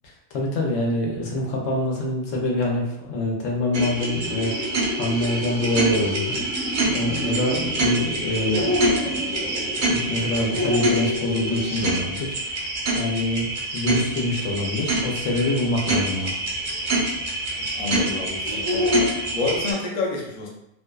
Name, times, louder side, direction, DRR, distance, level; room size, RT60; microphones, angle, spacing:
voice 1, 0.3-4.5 4.9-6.4 6.9-8.7 9.0-9.3 9.9-12.7 12.9-16.3, left 1 dB, 85° left, -1 dB, 1.0 m, -25 dB
sound 1, 3.7-19.7, right 1 dB, 55° right, 0.6 m, -26 dB
sound 2, 3.9-12.1, left 1 dB, 10° left, 0.4 m, -32 dB
voice 2, 17.6-19.1 19.3-20.5, left 4 dB, 50° left, -3 dB, 0.6 m, -28 dB
2.6 x 2.2 x 2.2 m, 0.81 s
omnidirectional pair, 1.3 m